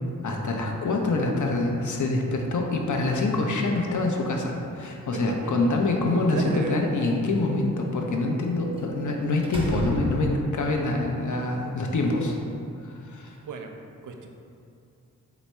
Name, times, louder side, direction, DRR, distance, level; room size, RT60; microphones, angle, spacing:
voice 1, 0.2-12.4 12.8-13.4, left 2 dB, 55° left, 1 dB, 0.6 m, -25 dB
voice 2, 5.1-6.8 11.3-11.5 13.4-13.7 14.0-14.3, right 3 dB, 60° right, 4 dB, 0.5 m, -35 dB
Slam, 5.6-6.6 8.8-9.0 9.4-10.6, right 1 dB, 15° right, 0.7 m, -33 dB
3.4 x 2.0 x 4.2 m, 2.5 s
cardioid pair, 45°, 35 cm